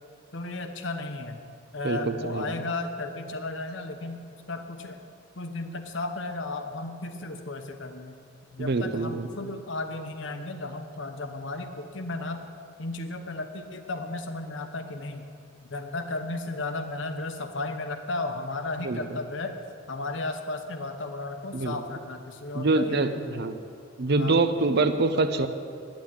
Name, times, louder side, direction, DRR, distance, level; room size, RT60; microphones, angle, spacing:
voice 1, 0.3-1.4 1.7-5.0 5.4-8.2 8.5-12.5 12.8-15.3 15.6-19.6 19.9-23.4 24.1-24.4 25.1-25.3, left 2 dB, 65° left, 7 dB, 1.0 m, -34 dB
voice 2, 1.8-2.5 8.6-9.3 18.8-19.0 21.5-21.8 22.5-23.5 24.0-25.5, right 3 dB, 55° right, 9 dB, 0.8 m, -25 dB
9.5 x 9.0 x 8.9 m, 2.3 s
head